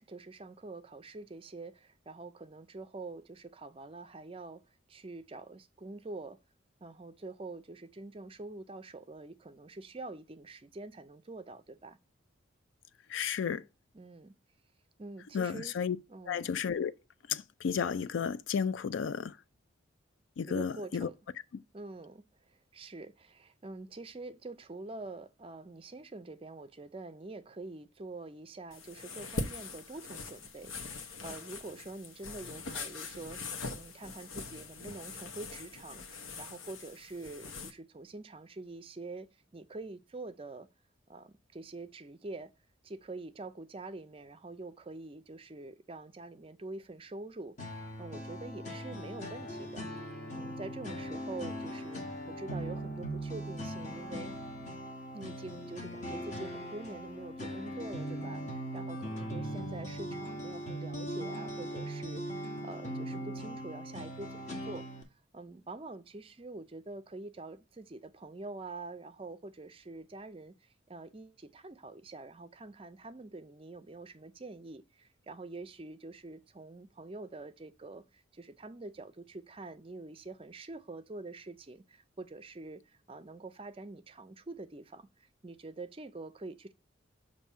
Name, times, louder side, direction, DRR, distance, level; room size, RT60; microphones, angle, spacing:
voice 1, 0.0-4.6 4.9-6.4 6.8-12.0 13.9-14.3 15.0-15.7 16.1-16.4 20.4-21.2 21.7-33.4 33.7-40.7 41.1-42.5 42.8-49.9 50.3-54.3 55.1-86.7, right 2 dB, 25° right, 0.4 m, -46 dB
voice 2, 13.1-13.6 15.3-16.0 16.3-16.9 17.3-19.3 20.4-21.1, left 7 dB, 70° left, 0.4 m, -32 dB
sound 1, 28.7-37.7, left 3 dB, 85° left, 0.9 m, -42 dB
sound 2, 47.6-65.0, equal, 35° left, 1.3 m, -40 dB
7.0 x 2.7 x 5.5 m
head